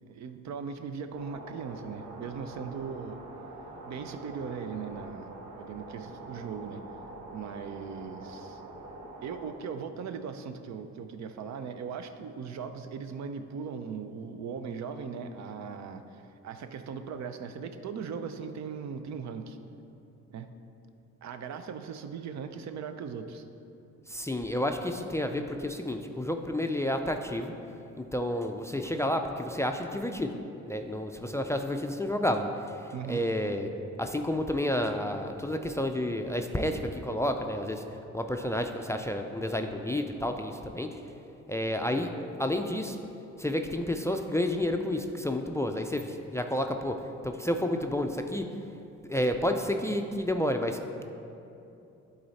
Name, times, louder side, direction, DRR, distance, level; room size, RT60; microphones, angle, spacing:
voice 1, 0.0-3.2 3.8-6.8 7.3-8.6 9.2-19.6 20.3-20.5 21.2-23.4 25.2-25.4 32.9-33.3, right 6 dB, 65° right, 8 dB, 0.6 m, -39 dB
sound 1, 1.1-9.5, right 2 dB, 90° right, 1.0 m, -45 dB
voice 2, 24.1-27.5 28.0-30.3 30.7-33.7 34.0-37.8 38.1-41.0 41.5-42.1 42.4-43.0 43.4-48.5 49.0-51.0, left 1 dB, 10° left, 5 dB, 0.3 m, -30 dB
11.0 x 3.9 x 4.1 m, 2.8 s
cardioid pair, 90°, 30 cm